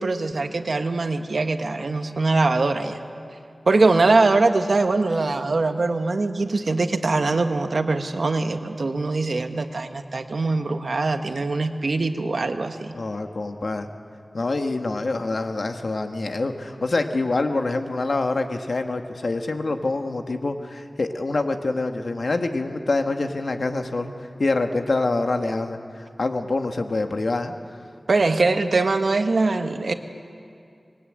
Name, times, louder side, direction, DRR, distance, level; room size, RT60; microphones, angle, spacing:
voice 1, 0.0-3.0 3.7-12.9 28.1-29.9, right 3 dB, 80° right, 7 dB, 1.4 m, -22 dB
voice 2, 12.9-13.9 14.3-24.1 24.4-27.5, left 2 dB, 75° left, 5 dB, 1.6 m, -26 dB
26.0 x 21.5 x 8.8 m, 2.4 s
wide cardioid pair, 75°, 0 cm